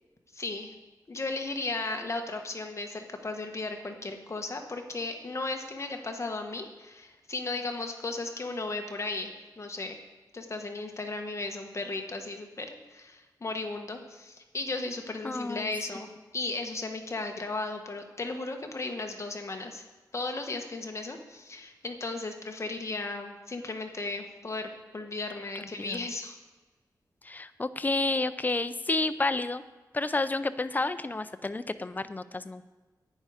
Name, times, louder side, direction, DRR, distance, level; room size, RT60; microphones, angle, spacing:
voice 1, 0.3-0.7 1.1-10.0 10.3-19.8 20.1-26.4, left 3 dB, 40° left, 4 dB, 1.3 m, -35 dB
voice 2, 15.2-15.7 25.6-26.1 27.2-29.6 29.9-32.6, left 2 dB, 25° left, 12 dB, 0.5 m, -30 dB
11.0 x 9.4 x 5.0 m, 1.2 s
wide cardioid pair, 105°, 7 cm